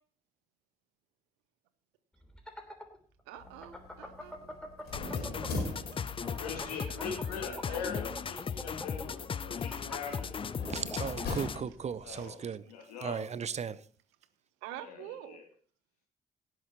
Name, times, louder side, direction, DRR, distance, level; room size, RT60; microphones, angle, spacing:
sound 1, 2.2-5.8 6.1-11.5, left 1 dB, 5° left, 3.0 m, -44 dB
voice 1, 3.3-4.5 5.1-7.8 11.7-11.8 12.1-12.9 14.6-15.4, right 12 dB, 70° right, 1.0 m, -49 dB
sound 2, 3.4-12.3, left 2 dB, 60° left, 4.3 m, -44 dB
sound 3, 4.9-11.7, left 6 dB, 30° left, 0.5 m, -37 dB
voice 2, 6.3-10.5 12.0-13.3 14.8-15.4, left 6 dB, 75° left, 1.9 m, -42 dB
voice 3, 10.7-12.6 13.0-13.8, right 7 dB, 35° right, 0.7 m, -36 dB
17.5 x 11.0 x 2.9 m
figure-of-eight pair, 40°, 19 cm